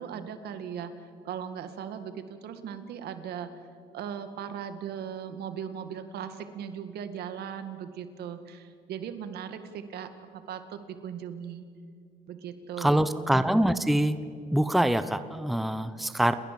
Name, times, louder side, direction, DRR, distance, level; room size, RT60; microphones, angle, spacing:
voice 1, 0.0-3.5 3.9-11.7 12.3-13.3, right 8 dB, 70° right, 10 dB, 2.0 m, -38 dB
voice 2, 12.8-14.2 14.5-16.3, right 1 dB, ahead, 12 dB, 0.9 m, -24 dB
29.5 x 20.0 x 7.7 m, 2.3 s
cardioid pair, 110°, 17 cm